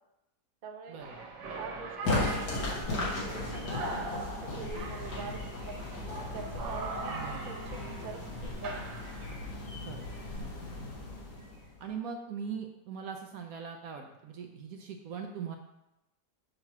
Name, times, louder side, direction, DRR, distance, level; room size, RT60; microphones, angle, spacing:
voice 1, 0.6-1.0 1.5-5.8 6.3-7.2 7.5-8.8, right 4 dB, 45° right, 1 dB, 0.6 m, -44 dB
sound 1, 1.0-9.5, right 3 dB, 85° right, 1.6 m, -41 dB
sound 2, 2.0-11.9, left 2 dB, 85° left, 2.0 m, -36 dB
voice 2, 4.4-4.8 7.1-7.6 9.7-10.1 10.3-10.9 11.8-15.6, right 6 dB, 70° right, 4 dB, 0.9 m, -41 dB
6.5 x 3.0 x 5.8 m, 0.91 s
omnidirectional pair, 1.8 m